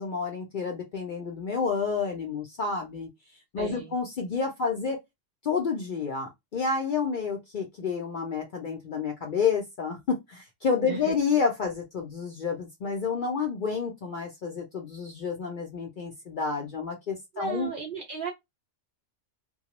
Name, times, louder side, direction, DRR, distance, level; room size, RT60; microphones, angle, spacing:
voice 1, 0.0-3.1 3.5-5.0 5.4-17.7, left 5 dB, 60° left, 0.5 m, -29 dB
voice 2, 3.6-3.9 10.9-11.0 17.3-18.3, right 6 dB, 60° right, 0.5 m, -35 dB
2.3 x 2.0 x 2.8 m
omnidirectional pair, 1.3 m